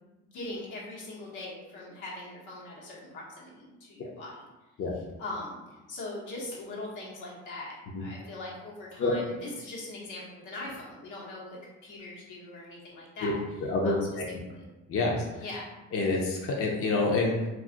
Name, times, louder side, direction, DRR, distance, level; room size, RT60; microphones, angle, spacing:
voice 1, 0.2-4.3 5.2-5.6 5.9-13.4 13.8-14.0 14.5-14.7 15.4-15.6, left 2 dB, 85° left, -5 dB, 1.0 m, -41 dB
voice 2, 13.6-14.2 14.9-15.5 15.9-17.5, left 3 dB, 50° left, -1 dB, 0.6 m, -27 dB
2.4 x 2.4 x 3.7 m, 1.1 s
cardioid pair, 90°, 30 cm